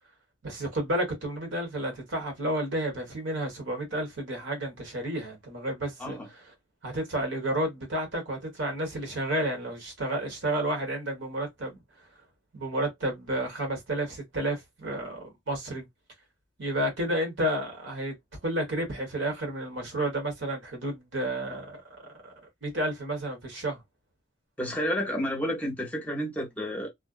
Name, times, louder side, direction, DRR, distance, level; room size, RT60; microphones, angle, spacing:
voice 1, 0.4-6.2 6.8-11.8 12.5-15.9 16.6-18.1 18.4-21.8 22.2-22.3 22.6-23.8, right 1 dB, 75° right, 1.3 m, -31 dB
voice 2, 24.6-26.9, equal, 10° left, 0.6 m, -30 dB
2.5 x 2.1 x 2.3 m
head